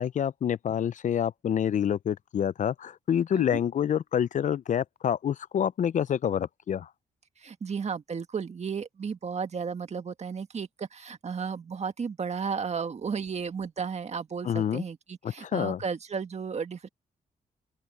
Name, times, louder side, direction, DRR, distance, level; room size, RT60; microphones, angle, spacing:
voice 1, 0.0-6.9 14.4-14.8 15.2-15.8, left 9 dB, 55° left, 0.5 m, -27 dB
voice 2, 7.4-16.9, right 6 dB, 45° right, 1.7 m, -34 dB
open air
cardioid pair, 85°, 15 cm